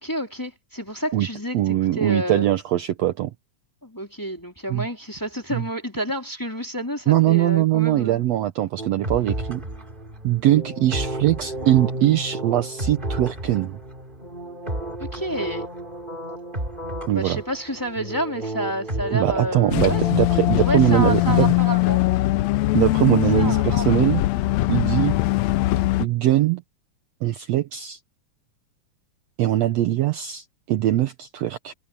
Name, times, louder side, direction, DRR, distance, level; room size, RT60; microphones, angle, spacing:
voice 1, 0.0-2.4 3.8-8.2 15.0-15.7 17.1-20.0 20.6-22.0 23.3-24.1, right 1 dB, 5° left, 2.6 m, -29 dB
voice 2, 1.5-3.3 4.7-4.9 5.5-5.6 7.1-9.6 10.2-13.8 17.1-17.4 19.1-21.5 22.7-24.2 24.7-25.2 26.0-26.6 27.2-28.0 29.4-31.7, right 14 dB, 70° right, 1.8 m, -21 dB
sound 1, 8.8-20.6, right 1 dB, 15° right, 4.1 m, -32 dB
sound 2, 19.7-26.1, left 18 dB, 75° left, 1.7 m, -21 dB
omnidirectional pair, 3.5 m